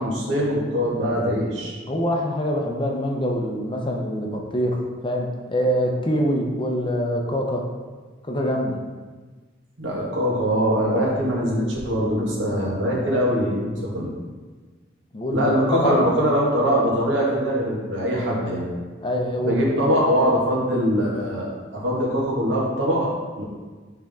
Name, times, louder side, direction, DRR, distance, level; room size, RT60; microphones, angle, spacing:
voice 1, 0.0-1.7 9.8-14.1 15.3-18.6 19.4-23.4, equal, 80° right, -4 dB, 1.6 m, -22 dB
voice 2, 1.9-7.6 8.2-8.8 13.0-13.3 15.1-16.1 19.0-19.9, equal, 25° left, 1 dB, 0.7 m, -24 dB
7.5 x 3.6 x 3.6 m, 1.4 s
head